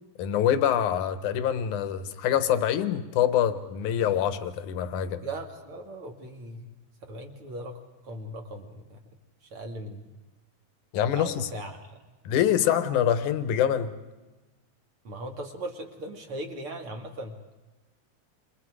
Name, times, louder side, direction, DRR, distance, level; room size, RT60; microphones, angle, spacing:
voice 1, 0.2-5.2 10.9-11.5 12.2-13.9, left 10 dB, 65° left, 11 dB, 2.4 m, -25 dB
voice 2, 5.2-6.7 7.1-7.7 8.0-9.0 9.4-10.1 11.2-12.0 15.0-17.3, right 1 dB, 40° right, 3 dB, 2.4 m, -38 dB
29.5 x 27.5 x 4.9 m, 1.2 s
omnidirectional pair, 4.4 m